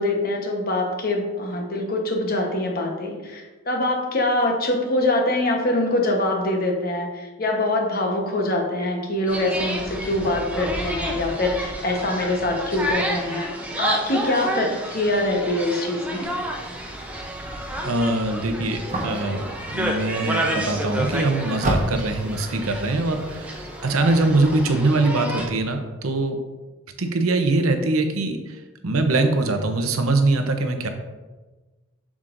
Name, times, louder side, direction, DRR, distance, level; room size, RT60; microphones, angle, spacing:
voice 1, 0.0-13.5 13.8-16.3, left 1 dB, 45° left, 1 dB, 1.1 m, -24 dB
sound 1, 9.3-25.5, right 1 dB, 5° right, 0.6 m, -30 dB
sound 2, 16.2-24.8, right 1 dB, 35° right, 1.2 m, -34 dB
voice 2, 17.8-23.5 23.8-26.4 27.0-28.6 28.8-30.9, right 2 dB, 90° right, 6 dB, 0.8 m, -22 dB
7.3 x 6.2 x 2.6 m, 1.2 s
head